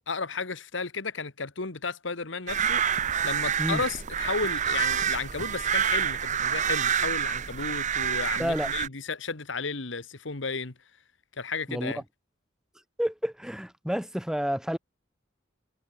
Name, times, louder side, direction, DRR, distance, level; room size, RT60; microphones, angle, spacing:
voice 1, 0.0-2.8 3.2-10.7 11.4-12.0, left 4 dB, 70° left, 1.6 m, -33 dB
sound 1, 2.5-8.9, right 8 dB, 40° right, 0.8 m, -27 dB
voice 2, 8.4-8.7 11.7-11.9 13.0-14.8, equal, 5° right, 1.4 m, -29 dB
head